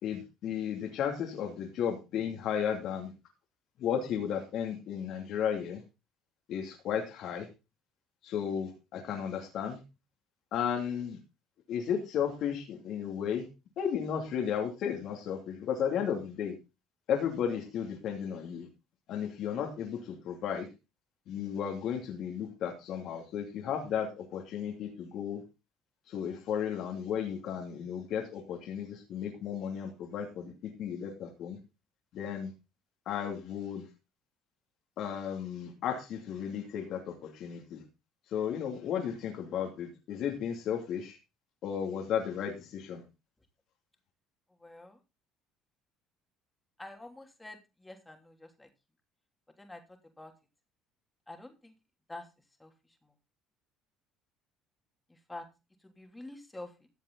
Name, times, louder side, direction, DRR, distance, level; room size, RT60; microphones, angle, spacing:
voice 1, 0.0-3.1 3.8-5.8 6.5-7.5 8.2-9.8 10.5-11.2 11.7-13.5 13.8-16.5 17.1-18.7 19.1-20.7 21.3-25.4 26.1-30.5 30.8-31.6 32.1-32.5 33.1-33.8 35.0-37.8 38.3-41.2 41.6-43.0, left 8 dB, 65° left, 1 dB, 2.7 m, -34 dB
voice 2, 44.6-45.0 46.8-48.7 49.6-49.8 50.2-50.3 51.3-51.7 52.1-52.2 52.6-52.7 55.3-55.4 55.8-56.9, left 2 dB, 10° left, 4 dB, 3.0 m, -47 dB
14.5 x 7.4 x 3.9 m, 0.28 s
supercardioid pair, 85°, 0 cm